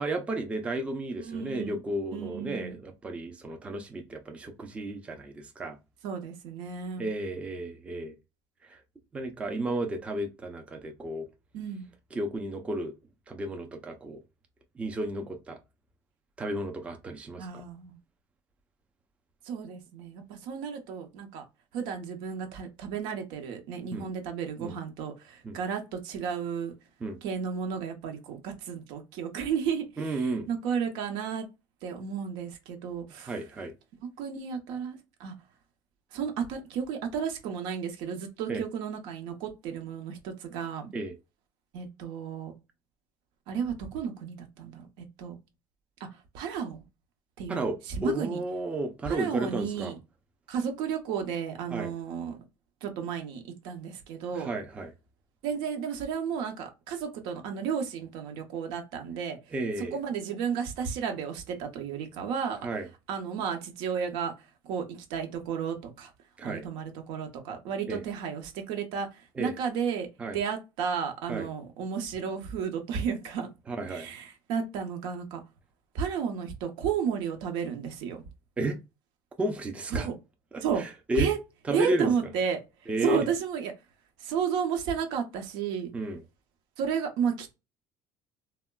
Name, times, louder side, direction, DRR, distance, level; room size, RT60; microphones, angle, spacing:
voice 1, 0.0-5.8 7.0-8.2 8.6-8.8 9.1-11.3 12.1-12.9 13.3-14.2 14.8-15.6 16.4-17.6 23.9-24.1 24.6-24.7 25.4-25.6 27.0-27.2 30.0-30.5 33.2-33.7 38.5-38.6 40.9-41.1 47.5-49.9 51.7-51.9 54.3-54.9 59.5-60.0 62.6-62.9 66.4-66.7 67.9-68.0 69.4-69.5 70.2-70.4 71.3-71.5 73.7-74.1 78.6-78.8 79.4-80.1 80.5-81.3 81.6-82.1 82.9-83.3 85.9-86.2, right 1 dB, 15° right, 0.4 m, -33 dB
voice 2, 1.2-1.8 2.1-2.8 6.0-7.1 11.5-11.9 17.4-18.0 19.4-21.4 21.7-26.7 27.2-31.5 31.8-33.3 34.2-35.3 36.1-40.9 41.7-42.5 43.5-45.4 46.3-46.8 47.4-48.4 49.1-50.0 50.5-52.4 52.8-54.5 55.4-59.4 59.8-62.7 63.1-64.3 64.6-66.1 66.4-70.1 70.3-73.5 73.9-75.4 75.9-78.2 79.9-80.1 80.6-80.8 81.2-81.4 81.7-82.6 83.0-83.7 84.2-85.9 86.8-87.5, right 7 dB, 90° right, 0.8 m, -33 dB
3.6 x 2.1 x 2.2 m
cardioid pair, 155°, 8 cm